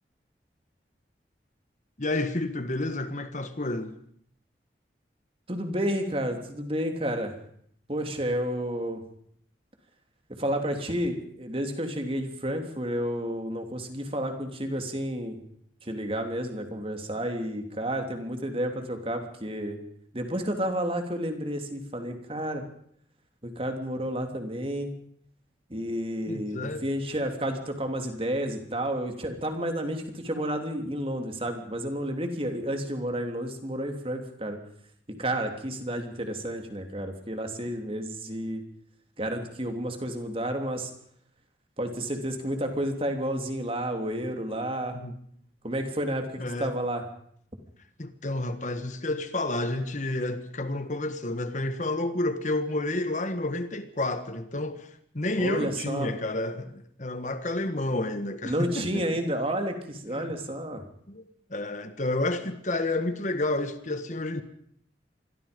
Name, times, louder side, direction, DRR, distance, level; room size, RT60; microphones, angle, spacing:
voice 1, 2.0-3.9 26.3-26.8 44.9-45.2 46.4-46.7 48.0-54.9 55.1-59.2 60.2-60.3 61.1-61.2 61.5-64.4, left 2 dB, 45° left, 1.6 m, -30 dB
voice 2, 5.5-7.3 7.9-9.0 10.4-15.4 15.8-19.8 20.1-22.6 23.4-24.9 25.7-34.6 35.2-38.6 39.2-40.9 41.8-45.0 45.6-47.0 55.4-56.1 58.4-60.8, right 1 dB, 30° right, 3.2 m, -31 dB
27.5 x 22.0 x 5.3 m
head